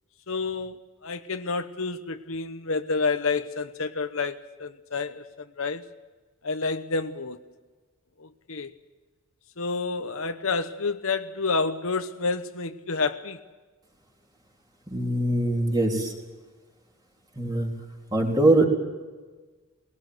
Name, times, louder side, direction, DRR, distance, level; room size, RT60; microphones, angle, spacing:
voice 1, 0.3-0.8 1.0-5.2 5.6-5.8 6.4-7.4 8.2-8.7 9.6-13.4, left 4 dB, 70° left, 1.0 m, -29 dB
voice 2, 14.9-16.1 17.4-17.7 18.1-18.6, right 1 dB, 20° right, 3.4 m, -22 dB
21.0 x 18.5 x 7.9 m
head